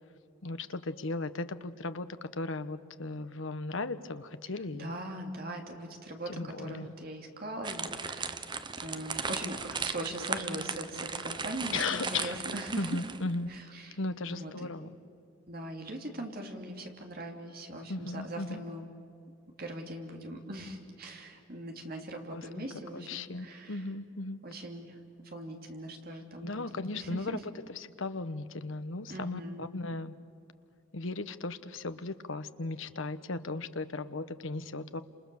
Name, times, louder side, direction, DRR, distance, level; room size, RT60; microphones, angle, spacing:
voice 1, 0.4-4.9 6.3-6.9 11.7-12.4 12.8-13.5 13.9-15.0 17.9-18.7 22.3-24.4 26.4-30.1 30.9-35.0, left 3 dB, 75° left, 11 dB, 1.0 m, -36 dB
voice 2, 4.7-8.4 8.8-12.8 13.5-14.0 14.3-14.5 15.5-18.8 19.6-23.8 24.4-25.0 25.2-26.6 26.9-27.4 29.1-29.7, right 1 dB, 45° right, 3 dB, 2.9 m, -40 dB
sound 1, 7.6-13.3, right 5 dB, 20° right, 0.7 m, -37 dB
29.5 x 27.5 x 7.1 m, 2.5 s
head